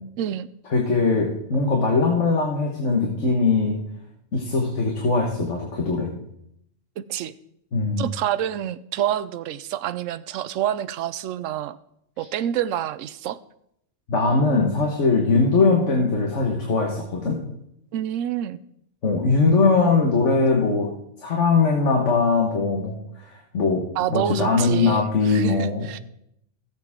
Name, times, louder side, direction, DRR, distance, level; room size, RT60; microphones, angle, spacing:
voice 1, 0.7-3.8 4.3-6.2 7.7-8.1 14.1-17.4 19.0-20.9 21.2-23.8 24.1-25.9, left 4 dB, 65° left, 0 dB, 1.8 m, -21 dB
voice 2, 7.0-7.3 8.0-11.8 12.2-13.4 17.9-18.6 24.0-26.0, right 11 dB, 80° right, 14 dB, 0.9 m, -27 dB
17.0 x 7.6 x 3.7 m, 0.75 s
omnidirectional pair, 1.3 m